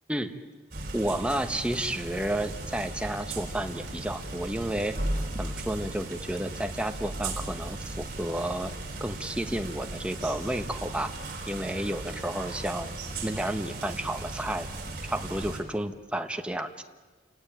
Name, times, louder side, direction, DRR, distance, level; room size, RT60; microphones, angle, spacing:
sound 1, 0.7-15.6, right 2 dB, 55° right, 4.6 m, -37 dB
voice 1, 0.9-4.9 5.4-8.7 9.0-11.1 11.5-12.9 13.2-14.7 15.0-16.8, right 1 dB, 5° right, 6 dB, 1.2 m, -31 dB
sound 2, 5.3-6.3, left 1 dB, 30° right, 2.5 m, -39 dB
29.0 x 18.0 x 9.1 m, 1.4 s
head